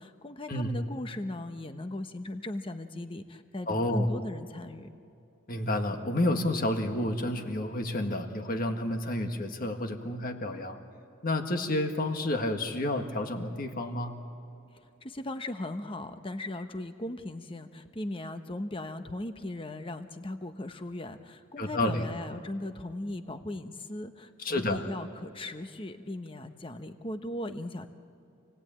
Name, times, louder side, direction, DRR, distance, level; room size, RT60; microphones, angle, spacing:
voice 1, 0.0-4.9 14.7-27.9, left 1 dB, 25° left, 8 dB, 1.0 m, -38 dB
voice 2, 3.7-4.1 5.5-10.8 11.2-14.2 21.6-22.1 24.4-24.8, left 1 dB, 40° left, 5 dB, 1.7 m, -30 dB
28.0 x 18.0 x 8.8 m, 2.6 s
head